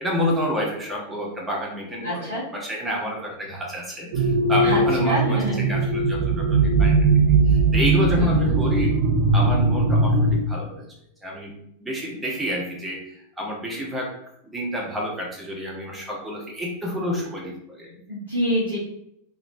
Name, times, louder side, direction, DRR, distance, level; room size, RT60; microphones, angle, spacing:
voice 1, 0.0-7.0 7.5-8.9 9.3-10.9 11.2-11.5 11.8-14.1 14.4-18.0, equal, 10° right, -2 dB, 1.0 m, -29 dB
voice 2, 2.0-2.4 4.6-5.7 8.1-8.5 18.1-18.8, equal, 75° right, -8 dB, 1.1 m, -26 dB
sound 1, 4.1-10.4, right 3 dB, 45° right, 0.8 m, -19 dB
3.7 x 3.1 x 2.7 m, 0.75 s
figure-of-eight pair, 90°, 0 cm